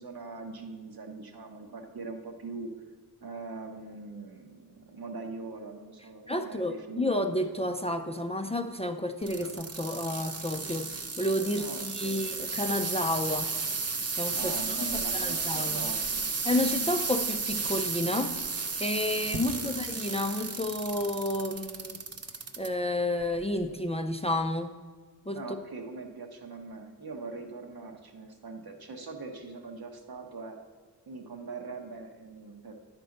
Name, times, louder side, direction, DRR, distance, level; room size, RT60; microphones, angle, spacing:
voice 1, 0.0-2.7 3.2-7.3 11.6-12.3 14.3-17.0 19.4-19.8 25.3-30.6 31.1-32.7, right 3 dB, 70° right, 3 dB, 1.1 m, -42 dB
voice 2, 6.3-13.5 14.2-14.8 15.1-15.9 16.4-18.3 18.8-22.0 22.6-24.7 25.3-25.4, left 1 dB, 15° left, 7 dB, 0.4 m, -31 dB
sound 1, 9.2-22.7 23.2-23.7 24.3-24.4, right 4 dB, 40° right, 0.7 m, -33 dB
10.0 x 4.4 x 6.4 m, 1.5 s
wide cardioid pair, 115°, 38 cm